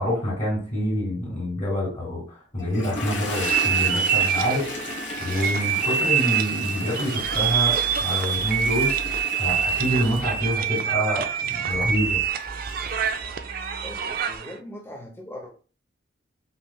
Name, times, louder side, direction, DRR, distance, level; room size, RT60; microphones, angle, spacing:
voice 1, 0.0-12.2, equal, 30° left, -7 dB, 2.1 m, -27 dB
Toilet flush, 2.6-13.2, left 3 dB, 70° left, 1.2 m, -36 dB
sound 1, 3.3-14.5, right 8 dB, 50° right, 0.4 m, -25 dB
sound 2, 7.2-8.0 8.3-10.5 11.7-14.0, right 2 dB, 30° right, 0.8 m, -39 dB
voice 2, 13.8-15.6, left 1 dB, 10° left, 2 dB, 0.8 m, -40 dB
5.4 x 3.2 x 2.3 m, 0.37 s
head